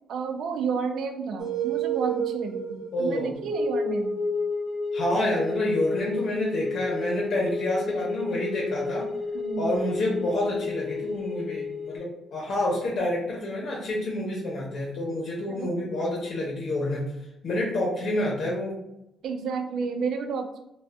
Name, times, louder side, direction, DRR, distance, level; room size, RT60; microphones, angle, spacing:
voice 1, 0.1-4.2 9.3-9.7 15.5-15.9 19.2-20.6, right 5 dB, 70° right, 5 dB, 0.3 m, -31 dB
sound 1, 1.4-12.0, left 1 dB, 55° right, 0.8 m, -31 dB
voice 2, 2.9-3.3 4.9-9.1 9.6-17.1 17.4-18.8, left 1 dB, 60° left, -3 dB, 0.8 m, -28 dB
2.4 x 2.3 x 3.3 m, 0.86 s
cardioid pair, 90°, 0 cm